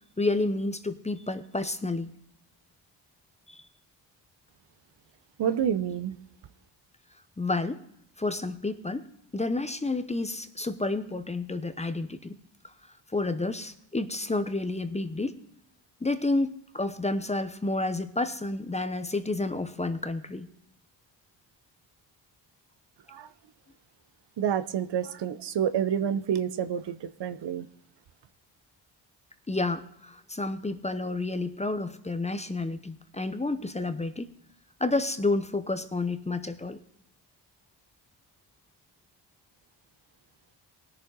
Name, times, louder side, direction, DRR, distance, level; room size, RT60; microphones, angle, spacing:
voice 1, 0.2-2.1 3.5-3.7 7.4-7.8 8.2-9.1 9.3-12.4 12.6-12.7 13.1-15.4 16.0-20.5 29.5-34.3 34.8-36.8, left 2 dB, 15° left, 0.8 m, -30 dB
voice 2, 5.4-6.2 23.1-23.3 24.4-27.7, right 9 dB, 60° right, 0.8 m, -28 dB
19.0 x 6.7 x 3.9 m
supercardioid pair, 60°, 47 cm